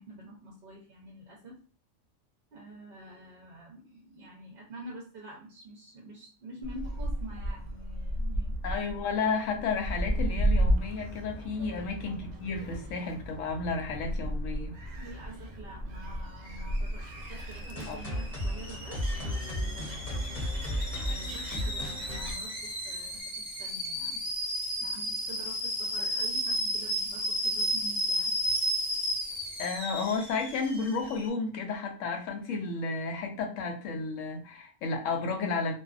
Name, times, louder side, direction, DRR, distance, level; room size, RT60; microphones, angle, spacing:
voice 1, 0.0-1.5 2.5-8.6 11.5-11.9 15.0-20.4 20.9-24.2 24.8-28.3, right 1 dB, 55° right, -2 dB, 0.7 m, -47 dB
Gull seagull, 6.6-22.3, equal, 90° right, 0.3 m, -34 dB
voice 2, 8.6-14.8 17.9-18.0 29.6-35.7, left 4 dB, 75° left, 3 dB, 1.0 m, -32 dB
Alarm / Boiling, 16.4-31.3, equal, 5° right, 0.6 m, -34 dB
sound 1, 17.7-23.2, equal, 30° left, 0.9 m, -35 dB
2.6 x 2.3 x 2.3 m, 0.40 s
omnidirectional pair, 1.4 m